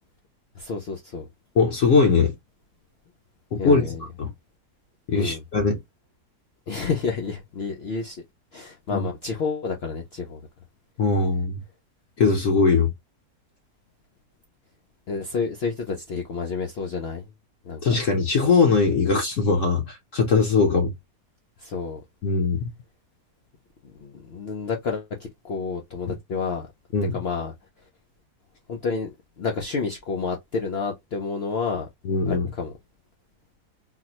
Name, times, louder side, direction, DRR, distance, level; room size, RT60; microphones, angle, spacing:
voice 1, 0.6-1.3 3.6-4.0 5.1-5.4 6.7-8.2 8.5-10.4 15.1-17.3 17.6-17.8 20.7-20.8 21.6-22.0 24.0-26.7 27.1-27.5 28.7-29.1 29.4-31.9 32.3-32.7, left 4 dB, 85° left, 0.5 m, -29 dB
voice 2, 1.6-2.3 3.5-4.3 5.1-5.8 8.9-9.0 11.0-11.6 12.2-12.9 17.8-20.9 22.2-22.6 26.1-26.2 26.9-27.2 32.0-32.5, left 4 dB, 60° left, 1.0 m, -21 dB
3.9 x 2.0 x 2.8 m
omnidirectional pair, 1.7 m